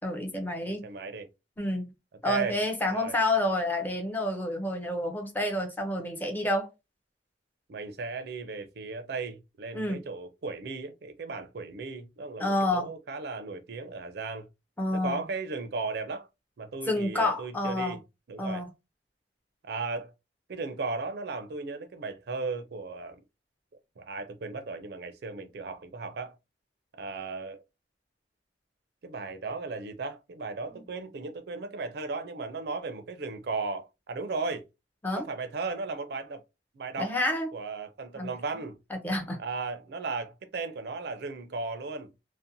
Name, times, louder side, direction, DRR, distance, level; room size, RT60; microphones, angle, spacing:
voice 1, 0.0-0.8 1.6-1.9 2.2-6.7 9.7-10.1 12.4-12.9 14.8-15.2 16.9-18.0 18.4-18.7 35.0-35.3 37.0-37.5 38.1-38.3 38.9-39.4, left 1 dB, 10° left, 0.5 m, -29 dB
voice 2, 0.7-1.3 2.2-2.6 2.9-3.2 7.7-14.5 14.9-16.3 16.6-18.0 18.3-18.6 19.6-20.1 20.5-23.2 24.0-26.4 27.0-27.6 29.0-34.6 35.2-36.4 36.7-37.1 37.5-38.8 39.4-42.1, right 4 dB, 60° right, 0.4 m, -36 dB
2.6 x 2.0 x 2.6 m
head